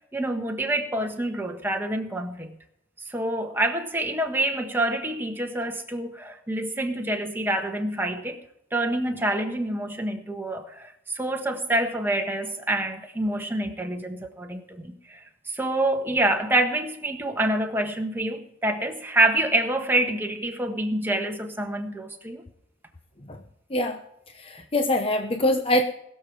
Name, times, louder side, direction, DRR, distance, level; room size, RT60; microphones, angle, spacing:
voice 1, 0.1-2.6 3.1-8.4 8.7-15.2 15.5-22.4, right 1 dB, 10° right, 1.5 m, -27 dB
voice 2, 24.3-25.8, left 1 dB, 30° left, 0.9 m, -24 dB
20.5 x 7.2 x 4.9 m
head